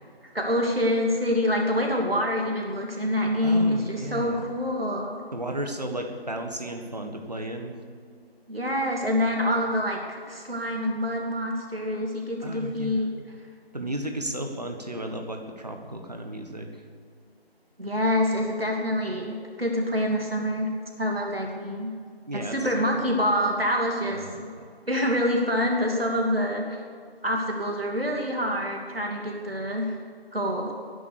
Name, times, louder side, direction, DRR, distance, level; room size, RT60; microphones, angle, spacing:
voice 1, 0.3-5.2 8.5-13.1 17.8-20.7 21.0-21.9 22.3-24.5 24.9-26.6 27.2-30.0 30.3-30.7, equal, 65° right, 0 dB, 2.7 m, -26 dB
voice 2, 3.4-4.4 5.3-7.8 12.4-13.1 13.7-16.8 22.3-22.9 24.1-24.4, right 1 dB, 40° right, 4 dB, 1.5 m, -34 dB
16.5 x 11.0 x 6.6 m, 2.2 s
figure-of-eight pair, 170°, 31 cm